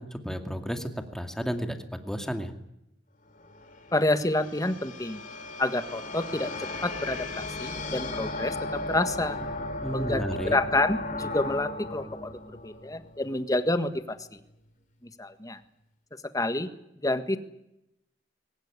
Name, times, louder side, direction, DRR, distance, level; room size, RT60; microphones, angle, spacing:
voice 1, 0.0-2.5 9.8-10.6, equal, 5° left, 6 dB, 2.3 m, -33 dB
sound 1, 3.3-13.7, left 2 dB, 45° left, 3.0 m, -36 dB
voice 2, 3.9-5.2 5.6-6.5 6.8-8.6 8.9-9.4 9.9-12.3 12.6-14.2 15.2-15.6 16.3-16.7 17.0-17.4, left 2 dB, 20° left, 10 dB, 1.6 m, -28 dB
22.0 x 19.0 x 9.7 m, 0.84 s
head